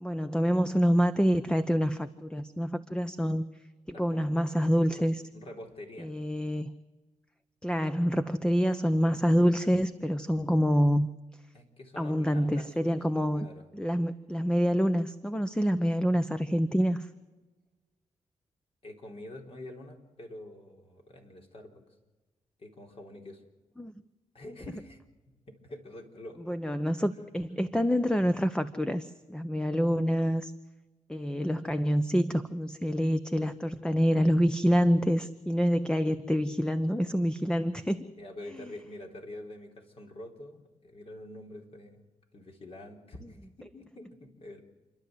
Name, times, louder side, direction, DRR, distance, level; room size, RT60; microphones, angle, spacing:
voice 1, 0.0-3.5 4.0-5.2 6.0-6.7 7.6-11.1 12.0-13.5 13.7-17.1 23.8-23.9 26.5-30.5 31.1-38.1 38.6-38.7, equal, 5° left, 10 dB, 0.9 m, -27 dB
voice 2, 3.9-4.3 4.9-5.1 5.3-6.1 11.5-13.1 13.3-13.7 18.8-21.8 22.6-23.4 24.3-25.0 25.3-26.6 38.2-42.1 42.3-44.6, left 1 dB, 50° left, 1 dB, 4.1 m, -46 dB
29.0 x 11.5 x 8.0 m, 1.2 s
cardioid pair, 75°, 13 cm